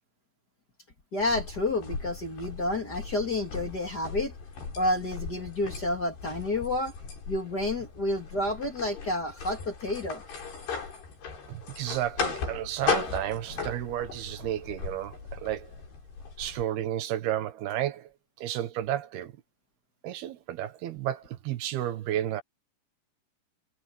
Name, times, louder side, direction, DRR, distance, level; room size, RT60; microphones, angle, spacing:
voice 1, 1.1-4.3 4.8-6.9 7.3-10.2, left 2 dB, 30° left, 2.4 m, -30 dB
sound 1, 1.2-16.7, left 5 dB, 85° left, 8.2 m, -37 dB
voice 2, 11.5-15.7 16.4-18.1 18.4-19.3 20.0-22.4, right 12 dB, 75° right, 3.1 m, -32 dB
omnidirectional pair, 4.7 m